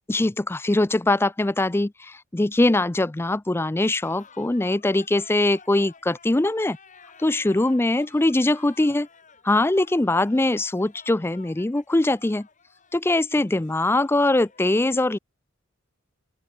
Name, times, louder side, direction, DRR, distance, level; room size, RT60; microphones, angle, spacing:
voice 1, 0.1-6.8 7.2-9.1 9.4-12.5 12.9-15.2, left 2 dB, 10° left, 0.4 m, -22 dB
sound 1, 4.0-14.6, left 5 dB, 40° left, 4.2 m, -52 dB
open air
head